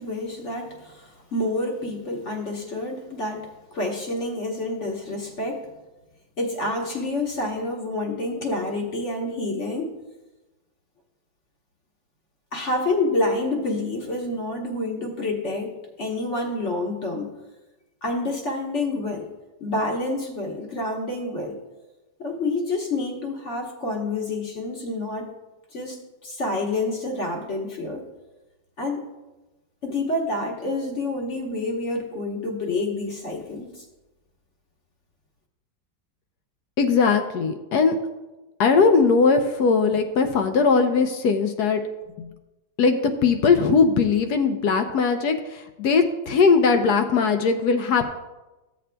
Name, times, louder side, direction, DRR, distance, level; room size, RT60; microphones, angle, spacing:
voice 1, 0.0-5.7 6.4-9.9 12.5-17.3 18.0-19.3 19.6-21.6 22.2-25.3 25.7-28.1 28.8-29.0 29.8-33.8, left 2 dB, 45° left, 0 dB, 1.2 m, -28 dB
voice 2, 36.8-38.0 38.6-41.8 42.2-42.3 42.8-48.0, left 5 dB, 70° left, 7 dB, 1.0 m, -20 dB
14.0 x 7.6 x 2.2 m, 1.1 s
omnidirectional pair, 2.1 m